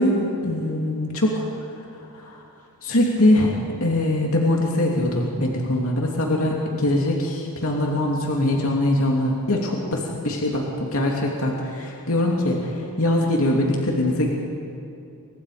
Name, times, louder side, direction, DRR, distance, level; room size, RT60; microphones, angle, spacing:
voice 1, 0.0-1.4 2.1-2.4 2.8-3.5 3.8-14.3, left 1 dB, 65° left, -1 dB, 2.8 m, -22 dB
29.0 x 24.5 x 5.1 m, 2.7 s
head